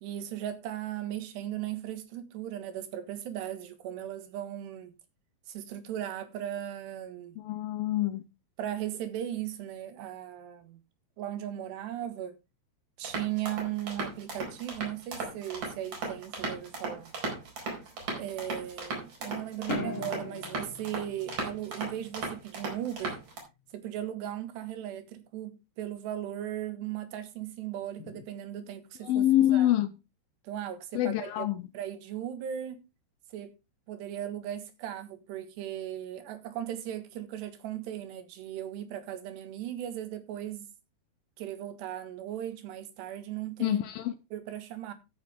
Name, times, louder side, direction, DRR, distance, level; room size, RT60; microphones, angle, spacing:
voice 1, 0.0-4.9 5.5-7.4 8.6-10.8 11.2-12.4 13.0-17.2 18.1-23.2 23.7-29.7 30.4-31.5 31.7-32.8 33.3-33.5 33.9-40.7 41.4-43.8 44.3-44.9, right 11 dB, 80° right, 3.7 m, -37 dB
voice 2, 7.4-8.2 29.0-29.9 30.9-31.6 43.6-44.1, left 13 dB, 75° left, 2.2 m, -26 dB
sound 1, 13.0-23.4, right 3 dB, 50° right, 6.0 m, -37 dB
sound 2, 19.7-22.2, left 5 dB, 50° left, 1.9 m, -39 dB
13.5 x 9.1 x 3.4 m
omnidirectional pair, 4.8 m